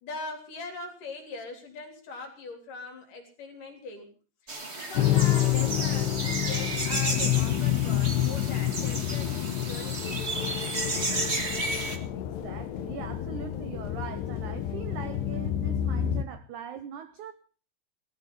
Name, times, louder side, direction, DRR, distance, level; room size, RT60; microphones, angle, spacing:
voice 1, 0.0-4.1 4.4-10.3, left 3 dB, 50° left, 4.9 m, -41 dB
sound 1, 4.5-12.0, right 2 dB, 60° right, 0.6 m, -33 dB
sound 2, 5.0-16.3, left 12 dB, 75° left, 3.3 m, -28 dB
voice 2, 11.8-17.3, right 9 dB, 75° right, 1.8 m, -41 dB
19.0 x 14.0 x 5.4 m
omnidirectional pair, 4.8 m